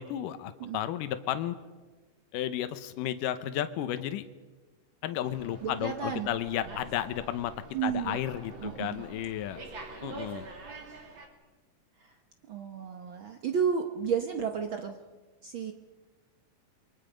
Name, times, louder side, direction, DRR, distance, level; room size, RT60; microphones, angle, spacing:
voice 1, 0.0-1.6 2.3-4.3 5.0-7.5 7.8-9.6 10.0-10.5, left 11 dB, 80° left, 11 dB, 2.5 m, -33 dB
Slam, 5.2-11.3, right 3 dB, 40° right, 3.1 m, -46 dB
voice 2, 5.6-6.3 7.7-8.2 8.6-9.0 12.0-12.1 12.5-15.0 15.4-15.7, right 7 dB, 80° right, 5 dB, 1.1 m, -32 dB
28.0 x 23.0 x 5.2 m, 1.3 s
omnidirectional pair, 3.8 m